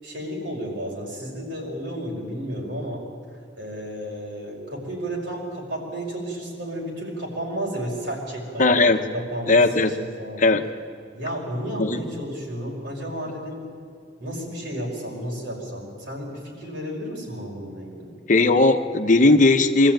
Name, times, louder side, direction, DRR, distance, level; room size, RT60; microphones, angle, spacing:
voice 1, 0.0-3.0 3.6-9.6 10.0-10.4 11.1-13.7 14.2-18.1, equal, 70° right, -2 dB, 5.4 m, -32 dB
voice 2, 8.6-9.0 9.5-9.9 10.4-10.6 11.8-12.0 18.3-19.9, left 2 dB, 45° left, 7 dB, 1.0 m, -17 dB
23.0 x 14.0 x 9.1 m, 2.3 s
head